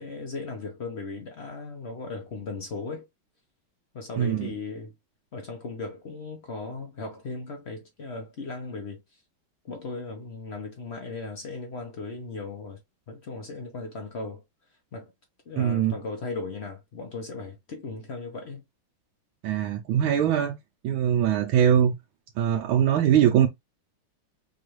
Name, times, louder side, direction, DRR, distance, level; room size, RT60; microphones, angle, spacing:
voice 1, 0.0-3.0 3.9-4.9 5.3-9.2 9.6-12.8 13.1-14.4 14.9-15.1 15.5-18.6, left 3 dB, 60° left, 0.6 m, -37 dB
voice 2, 4.2-4.5 15.6-15.9 19.4-20.5 20.8-21.9 22.4-23.5, right 9 dB, 85° right, 1.5 m, -22 dB
4.8 x 2.4 x 3.0 m
omnidirectional pair, 2.2 m